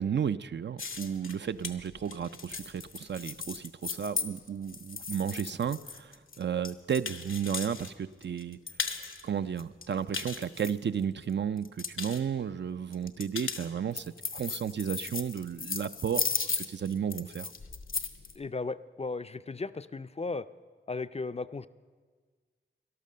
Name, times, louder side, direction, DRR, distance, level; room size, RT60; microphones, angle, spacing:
voice 1, 0.0-8.6 9.2-14.0 14.3-16.3 16.7-17.5, right 8 dB, 60° right, 13 dB, 0.4 m, -33 dB
sound 1, 0.8-7.9 8.2-9.2 9.6-11.2 11.6-12.2 12.9-18.3, left 5 dB, 85° left, 0.9 m, -36 dB
voice 2, 18.4-20.5 20.9-21.7, left 3 dB, 30° left, 13 dB, 0.4 m, -35 dB
12.5 x 11.5 x 6.7 m, 1.5 s
cardioid pair, 40°, 20 cm